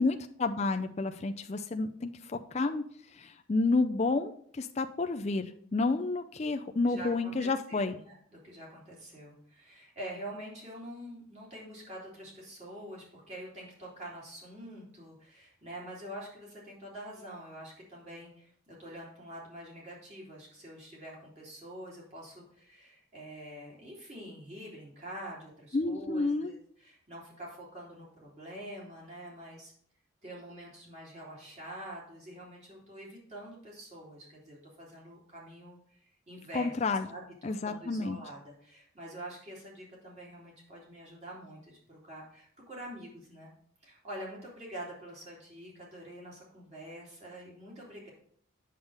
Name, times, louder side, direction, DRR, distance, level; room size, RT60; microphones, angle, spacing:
voice 1, 0.0-2.8 3.1-8.0 25.7-26.5 36.5-37.1 37.4-38.2, left 3 dB, 30° left, 6 dB, 0.4 m, -30 dB
voice 2, 6.8-29.7 30.2-36.7 37.0-43.5 43.8-48.1, right 1 dB, 35° right, -4 dB, 3.0 m, -46 dB
8.1 x 6.7 x 3.4 m, 0.63 s
head